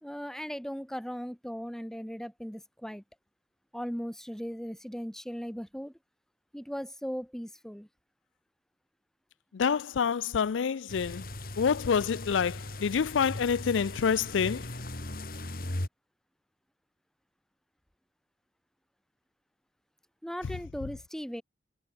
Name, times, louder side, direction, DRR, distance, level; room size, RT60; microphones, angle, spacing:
voice 1, 0.0-3.0 3.7-5.9 6.5-7.9 20.2-21.4, equal, 5° left, 1.5 m, -38 dB
voice 2, 9.5-11.3 11.6-14.8 20.4-20.6 20.8-20.9, left 6 dB, 90° left, 0.4 m, -27 dB
sound 1, 10.9-15.9, left 1 dB, 50° left, 2.7 m, -38 dB
head